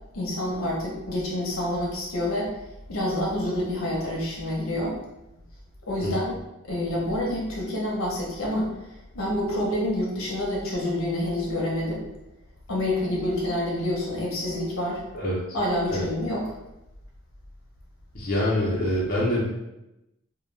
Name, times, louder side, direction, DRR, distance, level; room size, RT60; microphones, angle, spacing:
voice 1, 0.1-2.5 2.9-5.0 5.9-6.4 6.7-8.7 9.1-12.0 12.7-15.0 15.5-16.5, left 1 dB, 75° left, -3 dB, 0.7 m, -27 dB
voice 2, 18.1-19.4, left 1 dB, 45° left, -6 dB, 0.7 m, -25 dB
2.3 x 2.2 x 3.1 m, 0.92 s
head